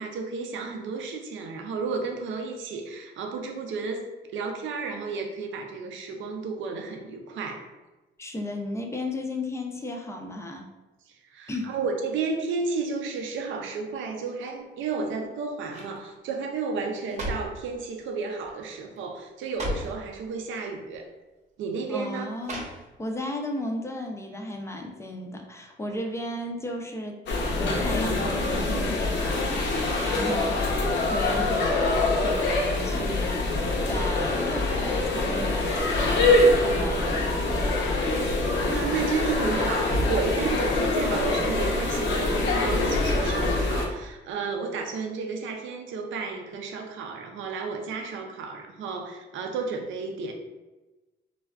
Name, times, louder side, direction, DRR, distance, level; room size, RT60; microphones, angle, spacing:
voice 1, 0.0-4.1 4.3-7.7 11.1-21.1 21.6-22.3 38.5-50.3, right 4 dB, 75° right, 3 dB, 0.5 m, -32 dB
voice 2, 8.2-10.7 11.5-11.7 21.9-22.6 23.0-27.2 27.6-37.7, left 1 dB, 15° left, 3 dB, 0.4 m, -34 dB
sound 1, 14.8-15.2 15.7-16.0 16.8-17.6 18.4-18.7 19.0-19.1 19.4-20.0 20.9-21.1 22.4-23.2 23.6-23.7, equal, 35° right, 0.8 m, -35 dB
sound 2, 27.3-43.9, left 2 dB, 65° left, 0.6 m, -24 dB
3.3 x 2.3 x 2.3 m, 1.1 s
cardioid pair, 90°, 20 cm